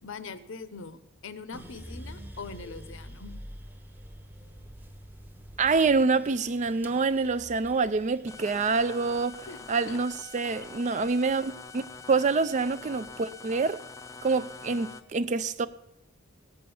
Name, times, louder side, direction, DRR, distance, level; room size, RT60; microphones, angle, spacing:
voice 1, 0.0-3.4 9.5-10.0 11.4-11.6, left 4 dB, 60° left, 0.8 m, -43 dB
sound 1, 1.5-11.7 12.2-13.0, equal, 10° right, 0.8 m, -47 dB
voice 2, 5.6-13.8 14.2-15.7, right 4 dB, 35° right, 0.4 m, -26 dB
sound 2, 8.3-15.0, left 4 dB, 15° left, 0.5 m, -45 dB
17.0 x 6.9 x 7.0 m
head